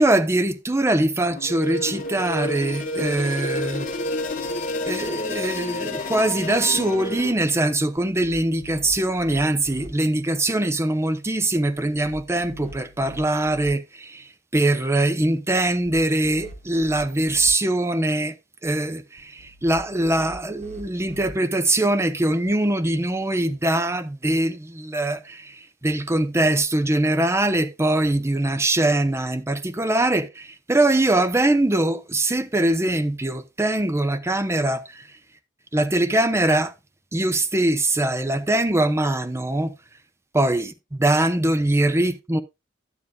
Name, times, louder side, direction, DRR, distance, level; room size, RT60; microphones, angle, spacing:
voice 1, 0.0-3.9 4.9-18.4 18.6-35.1 35.7-36.7 37.1-39.7 40.3-42.4, right 1 dB, 15° right, 0.6 m, -22 dB
sound 1, 1.3-7.3, left 2 dB, 45° left, 2.1 m, -29 dB
sound 2, 8.0-9.9 11.8-13.7 15.6-17.5 19.4-21.3, right 1 dB, 40° right, 1.6 m, -44 dB
11.0 x 9.7 x 2.3 m
head